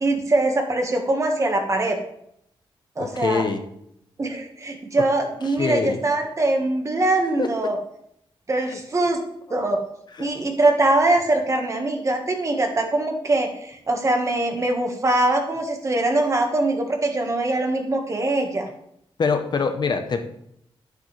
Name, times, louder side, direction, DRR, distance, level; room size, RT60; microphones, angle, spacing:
voice 1, 0.0-2.0 3.0-3.4 4.2-7.8 8.5-9.2 9.5-9.8 10.2-18.7, right 2 dB, 35° right, 3 dB, 1.5 m, -22 dB
voice 2, 3.0-3.6 5.6-6.0 7.4-7.5 8.6-9.6 10.2-10.3 19.2-20.2, left 5 dB, 50° left, 7 dB, 0.9 m, -25 dB
10.0 x 9.4 x 3.3 m, 0.74 s
wide cardioid pair, 135°, 10 cm